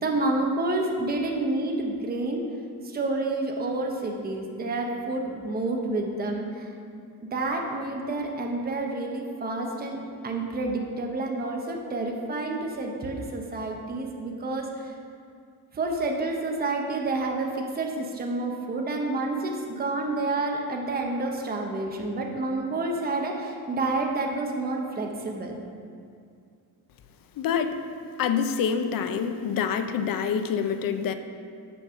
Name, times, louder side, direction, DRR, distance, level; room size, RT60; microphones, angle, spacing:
voice 1, 0.0-2.4 2.9-6.5 7.3-10.0 10.2-14.7 15.7-25.5, right 2 dB, 25° right, 1 dB, 0.8 m, -29 dB
voice 2, 27.4-27.8 28.2-31.1, left 7 dB, 60° left, 9 dB, 0.6 m, -26 dB
7.0 x 5.3 x 6.2 m, 2.3 s
cardioid pair, 155°, 38 cm